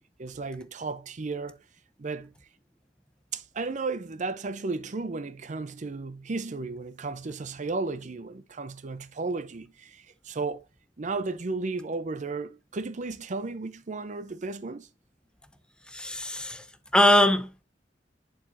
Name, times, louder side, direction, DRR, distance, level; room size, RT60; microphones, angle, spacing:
voice 1, 0.2-1.6 2.0-2.3 3.3-10.6 11.0-14.9, right 3 dB, 45° right, 0.6 m, -34 dB
voice 2, 15.9-16.6 16.9-17.6, left 1 dB, 5° left, 0.7 m, -22 dB
11.0 x 4.7 x 2.6 m
head